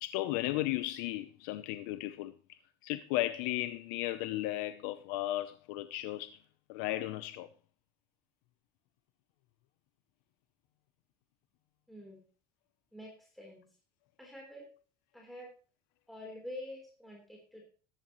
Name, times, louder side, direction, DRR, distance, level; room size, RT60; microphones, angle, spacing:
voice 1, 0.0-2.3 2.8-6.3 6.7-7.5, left 16 dB, 90° left, 0.7 m, -35 dB
voice 2, 11.9-12.2 12.9-13.6 14.2-14.6 15.1-15.5 16.1-17.6, left 1 dB, ahead, 3.7 m, -47 dB
14.0 x 11.5 x 3.1 m
cardioid pair, 140°, 10 cm